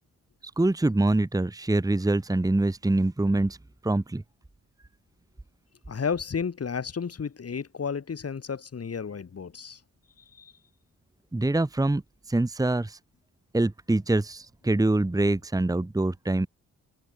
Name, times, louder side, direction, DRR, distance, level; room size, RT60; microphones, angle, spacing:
voice 1, 0.6-3.6 3.8-4.2 11.3-12.0 12.3-13.0 13.5-16.5, right 2 dB, 10° right, 1.4 m, -24 dB
voice 2, 5.9-9.8 10.3-10.5, left 6 dB, 50° left, 5.6 m, -32 dB
cardioid pair, 90°, 31 cm